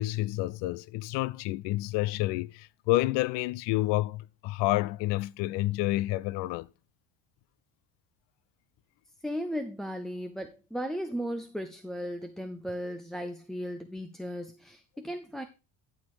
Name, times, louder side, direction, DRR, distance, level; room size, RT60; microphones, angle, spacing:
voice 1, 0.0-6.7, left 18 dB, 70° left, 0.5 m, -29 dB
voice 2, 9.2-15.4, equal, ahead, 0.4 m, -36 dB
12.0 x 4.4 x 4.7 m
cardioid pair, 130°, 44 cm